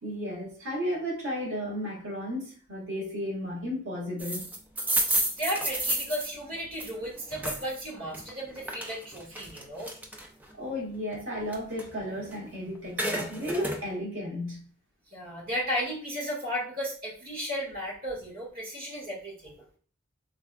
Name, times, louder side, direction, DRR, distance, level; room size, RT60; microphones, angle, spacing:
voice 1, 0.0-4.5 10.5-14.7, equal, 90° right, -3 dB, 1.6 m, -34 dB
sound 1, 4.2-7.8 8.1-10.5 10.9-12.5 12.8-13.8, right 1 dB, 10° right, 0.4 m, -31 dB
voice 2, 5.4-9.9 15.1-19.5, equal, 50° right, -5 dB, 1.7 m, -34 dB
3.4 x 3.4 x 2.2 m, 0.43 s
head